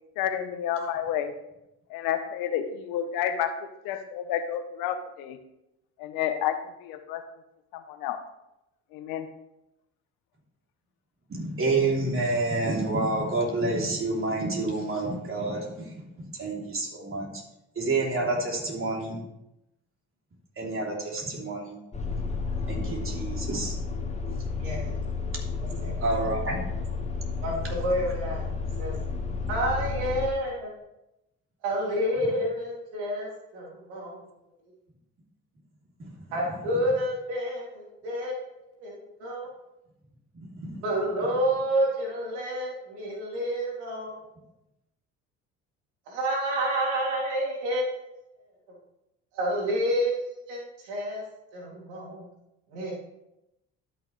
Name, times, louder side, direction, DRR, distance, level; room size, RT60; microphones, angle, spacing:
voice 1, 0.1-1.3 1.9-5.4 6.0-7.2 7.7-8.2 8.9-9.3, left 9 dB, 75° left, 9 dB, 1.0 m, -30 dB
voice 2, 11.3-15.9 16.2-17.4 17.7-19.2 20.6-21.8 22.7-23.7 26.0-26.6 40.3-40.8, right 2 dB, 35° right, -1 dB, 3.1 m, -28 dB
sound 1, 21.9-30.3, left 4 dB, 20° left, 1.4 m, -32 dB
voice 3, 24.6-24.9 25.6-26.3 27.4-28.5 28.8-28.9 29.5-30.7 31.6-34.2 36.3-39.5 40.8-44.2 46.1-47.9 48.7-48.8 49.3-51.2 51.5-52.3 52.7-52.9, equal, 85° right, -3 dB, 2.8 m, -29 dB
12.0 x 6.1 x 3.2 m, 0.88 s
supercardioid pair, 65°, 35 cm